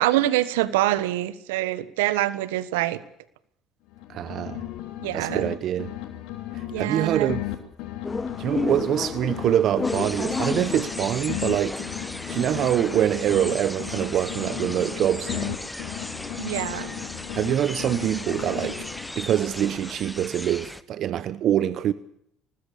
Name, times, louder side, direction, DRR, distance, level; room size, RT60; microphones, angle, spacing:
voice 1, 0.0-3.0 5.0-5.5 6.7-7.4 16.4-17.1, right 15 dB, 80° right, 1.4 m, -25 dB
sound 1, 3.9-5.5 5.8-9.5 9.8-13.5 13.8-17.5 17.8-19.2, left 14 dB, 70° left, 3.4 m, -35 dB
voice 2, 4.1-4.6 5.1-5.9 6.5-7.4 8.4-11.8 12.3-15.6 17.4-18.8 19.2-21.9, right 11 dB, 55° right, 1.0 m, -25 dB
sound 2, 8.0-20.0, left 4 dB, 25° left, 1.0 m, -35 dB
sound 3, 9.8-20.8, left 1 dB, 5° left, 1.4 m, -37 dB
24.0 x 20.0 x 6.9 m
hypercardioid pair, 65°, 0 cm